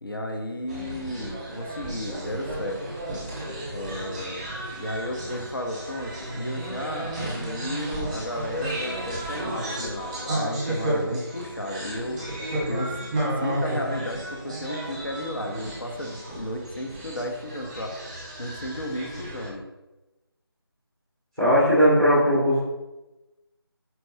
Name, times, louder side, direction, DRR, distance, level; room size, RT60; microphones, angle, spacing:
voice 1, 0.0-2.8 3.7-4.5 4.8-12.4 12.7-13.0 13.4-17.9 18.4-19.7, left 1 dB, 60° left, 3 dB, 0.9 m, -33 dB
sound 1, 0.7-19.5, right 1 dB, 20° right, 1.0 m, -33 dB
voice 2, 21.4-22.6, equal, ahead, -12 dB, 0.7 m, -18 dB
4.5 x 4.3 x 2.7 m, 1.0 s
figure-of-eight pair, 160°, 13 cm